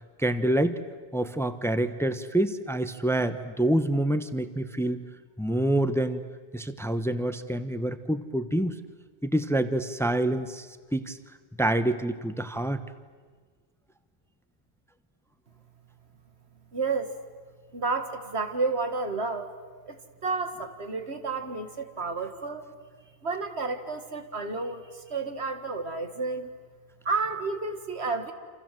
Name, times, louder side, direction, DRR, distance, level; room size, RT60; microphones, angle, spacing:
voice 1, 0.2-0.8 1.1-5.0 5.4-6.2 6.5-8.8 9.2-10.7 10.9-11.2 11.6-12.8, right 1 dB, 5° left, 11 dB, 1.0 m, -27 dB
voice 2, 16.7-17.1 17.7-19.5 19.9-22.7 23.2-26.5 27.1-28.3, right 4 dB, 85° right, 7 dB, 2.2 m, -31 dB
28.0 x 27.5 x 7.6 m, 1.5 s
omnidirectional pair, 1.1 m